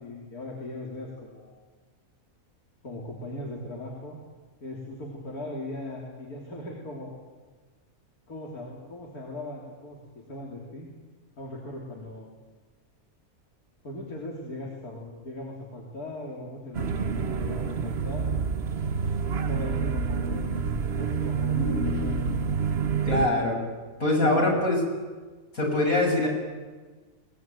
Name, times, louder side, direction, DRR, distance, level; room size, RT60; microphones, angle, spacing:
voice 1, 0.0-1.5 2.8-4.2 4.6-7.1 8.3-10.9 11.4-12.3 13.8-18.3 19.5-20.5 21.0-22.1 24.2-24.5, left 1 dB, 90° left, -2 dB, 3.9 m, -39 dB
sound 1, 16.7-23.3, right 5 dB, 50° right, 1.2 m, -28 dB
voice 2, 21.6-22.4 23.1-23.6 24.0-24.8 25.5-26.3, left 2 dB, 70° left, 0 dB, 7.2 m, -24 dB
23.0 x 20.5 x 9.3 m, 1.4 s
omnidirectional pair, 1.5 m